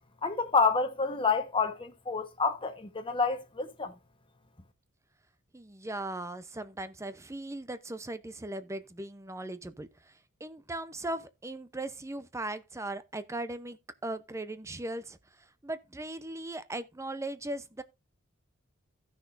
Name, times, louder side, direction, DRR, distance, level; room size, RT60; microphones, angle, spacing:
voice 1, 0.2-3.9, left 4 dB, 25° left, 1.2 m, -28 dB
voice 2, 5.5-17.8, right 2 dB, 15° right, 0.7 m, -38 dB
16.0 x 6.2 x 2.6 m
head